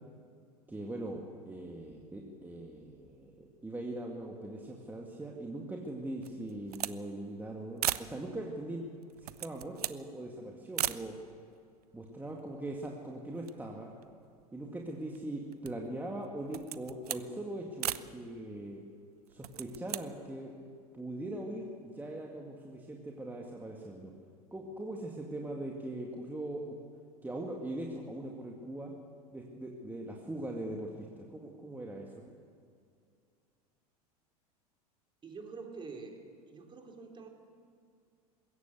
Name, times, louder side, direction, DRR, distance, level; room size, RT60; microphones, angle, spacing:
voice 1, 0.7-8.9 9.2-11.1 11.9-13.9 14.5-18.8 19.3-20.6 20.9-24.1 24.5-26.8 27.2-28.9 29.3-32.4, right 1 dB, 10° right, 0 dB, 2.2 m, -41 dB
sound 1, 6.2-7.0 7.3-7.4 7.8-8.1 9.0-10.0 10.7-11.0 11.8-11.9 12.1-13.0 13.3-14.6 15.1-15.9 16.4-17.3 17.8-18.1 19.3-20.0, right 11 dB, 70° right, 0.7 m, -37 dB
voice 2, 35.2-36.2 36.5-37.3, right 4 dB, 25° right, 2 dB, 3.5 m, -46 dB
21.0 x 16.5 x 8.0 m, 2.3 s
figure-of-eight pair, 80°, 20 cm